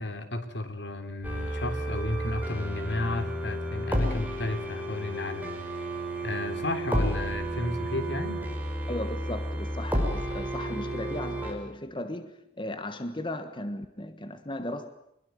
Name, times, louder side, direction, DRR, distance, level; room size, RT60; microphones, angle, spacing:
voice 1, 0.0-5.8 6.2-8.4, left 2 dB, 75° left, 3.5 m, -33 dB
sound 1, 1.2-11.5, right 1 dB, 10° right, 5.7 m, -32 dB
voice 2, 8.9-14.9, left 1 dB, 30° left, 1.4 m, -36 dB
25.0 x 21.5 x 9.4 m
head